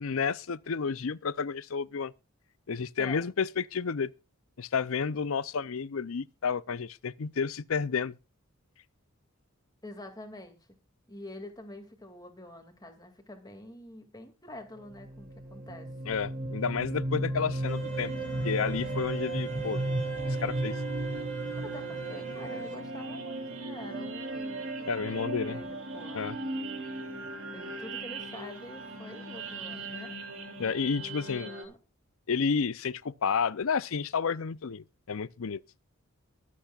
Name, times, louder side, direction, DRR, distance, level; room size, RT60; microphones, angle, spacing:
voice 1, 0.0-2.1 2.7-4.1 4.6-8.2 16.1-18.1 18.4-19.9 20.3-20.7 24.8-25.6 26.1-26.4 30.6-31.5 32.3-35.6, left 5 dB, 70° left, 0.6 m, -31 dB
voice 2, 9.8-10.6 11.1-15.9 21.5-26.3 27.5-30.2 31.1-31.8, left 1 dB, 20° left, 2.4 m, -46 dB
sound 1, 14.9-31.6, right 1 dB, 60° right, 3.4 m, -36 dB
sound 2, 17.7-22.7, right 6 dB, 35° right, 6.4 m, -38 dB
23.0 x 8.5 x 2.4 m
head